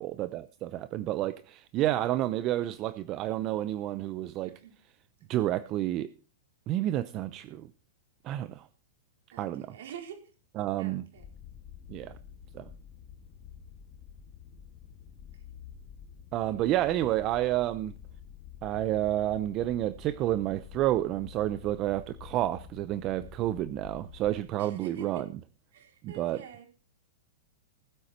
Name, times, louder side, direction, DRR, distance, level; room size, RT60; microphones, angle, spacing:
voice 1, 0.0-4.5 5.3-6.1 6.7-7.7 8.2-8.7 9.4-9.8 10.5-11.0 11.9-12.1 12.5-12.7 16.3-17.9 18.6-25.3 26.0-26.4, right 14 dB, 30° right, 0.6 m, -30 dB
voice 2, 9.3-10.2 10.8-11.2 24.6-25.0 25.7-26.7, right 8 dB, 70° right, 4.6 m, -46 dB
sound 1, 11.1-24.4, left 8 dB, 40° left, 2.3 m, -49 dB
19.0 x 7.9 x 4.4 m
hypercardioid pair, 150°, 0 cm